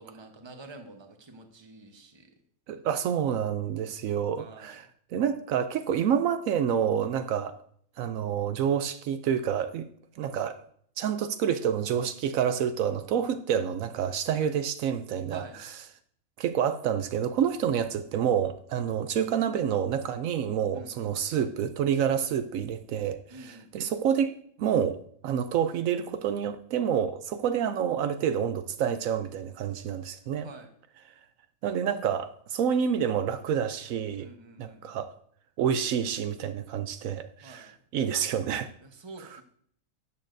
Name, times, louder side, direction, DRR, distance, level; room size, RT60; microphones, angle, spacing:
voice 1, 0.0-2.3 4.4-4.7 15.3-15.6 20.7-21.2 23.3-23.9 30.4-30.7 34.2-35.1 37.4-37.7 38.8-39.4, right 3 dB, 20° right, 5 dB, 0.9 m, -48 dB
voice 2, 2.7-7.6 8.0-9.9 10.2-10.6 11.0-15.8 16.4-24.3 24.6-30.5 31.6-34.3 34.6-35.1 35.6-38.7 39.2-39.4, right 8 dB, 75° right, 10 dB, 1.0 m, -28 dB
12.5 x 8.5 x 2.6 m, 0.62 s
omnidirectional pair, 1.4 m